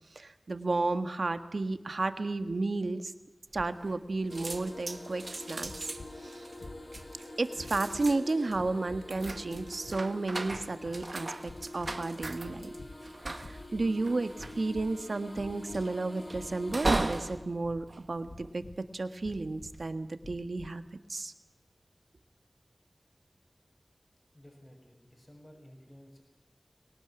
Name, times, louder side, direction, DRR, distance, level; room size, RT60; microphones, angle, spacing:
voice 1, 0.1-3.1 3.5-5.7 6.2-6.5 7.4-12.7 13.3-14.3 14.6-18.6 18.9-20.8 21.1-21.3, right 3 dB, 85° right, 10 dB, 1.5 m, -32 dB
sound 1, 3.5-4.1 4.3-18.9 19.4-19.8, right 2 dB, 65° right, 1.6 m, -38 dB
sound 2, 4.3-17.3, left 1 dB, 55° left, 4.3 m, -46 dB
sound 3, 5.6-6.2 6.5-7.2 7.5-8.1 8.5-9.1 9.5-10.0 10.4-11.1 11.4-12.1 12.4-13.0 13.3-13.9 14.3-15.0 15.3-15.9 16.3-16.8 17.3-17.9 18.2-18.8 19.2-19.7 20.2-20.8, left 2 dB, 90° left, 1.6 m, -49 dB
voice 2, 24.3-26.2, equal, 35° left, 2 dB, 6.8 m, -54 dB
22.5 x 19.0 x 10.0 m, 1.0 s
wide cardioid pair, 45°, 0 cm